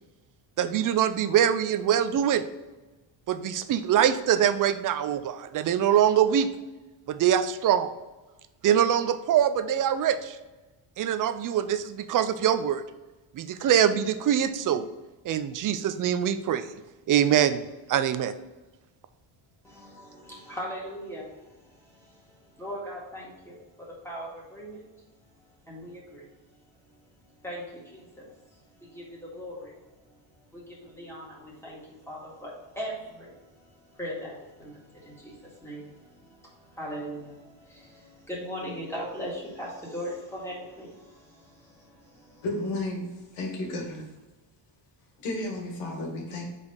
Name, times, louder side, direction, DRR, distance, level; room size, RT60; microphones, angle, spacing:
voice 1, 0.6-2.4 3.3-6.5 7.1-7.9 8.6-10.4 11.0-12.8 13.3-14.9 15.2-16.7 17.1-17.6 17.9-18.3, right 9 dB, 45° right, 12 dB, 0.4 m, -23 dB
voice 2, 19.6-21.6 21.8-23.6 24.0-24.8 25.7-26.3 27.4-28.3 28.8-29.8 30.5-42.4, equal, 5° left, -5 dB, 1.9 m, -40 dB
voice 3, 42.4-43.1 43.3-44.0 45.2-46.4, left 2 dB, 80° left, 0 dB, 2.0 m, -32 dB
4.9 x 4.2 x 5.5 m, 1.1 s
cardioid pair, 155°, 50 cm